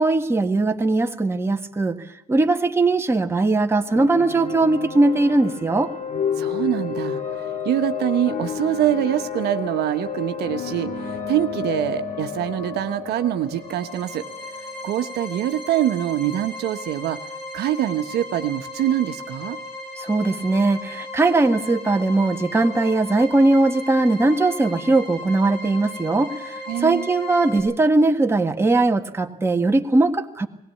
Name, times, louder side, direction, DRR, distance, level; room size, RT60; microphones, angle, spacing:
voice 1, 0.0-2.0 2.3-5.9 20.0-30.5, right 2 dB, 15° right, 4 dB, 1.6 m, -20 dB
sound 1, 3.9-15.5, left 7 dB, 50° left, 3.6 m, -31 dB
voice 2, 6.4-14.2 14.6-17.2 17.5-19.6 26.7-27.1, right 12 dB, 75° right, 7 dB, 1.2 m, -24 dB
sound 2, 13.4-27.6, left 1 dB, 75° left, 7.8 m, -36 dB
20.5 x 16.5 x 8.5 m, 0.87 s
cardioid pair, 110°, 17 cm